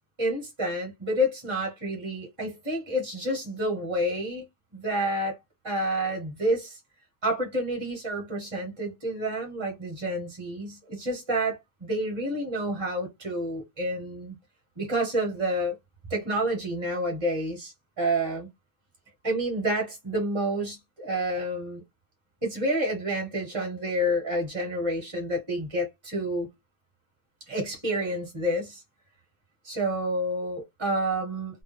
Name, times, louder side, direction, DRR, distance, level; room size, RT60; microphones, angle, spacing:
voice 1, 0.2-4.5 4.7-5.4 5.6-6.8 7.2-14.4 14.8-15.8 16.1-18.5 19.2-21.8 22.4-26.5 27.5-28.8 29.6-31.6, right 1 dB, 30° right, 0.9 m, -29 dB
2.3 x 2.1 x 3.1 m
omnidirectional pair, 1.1 m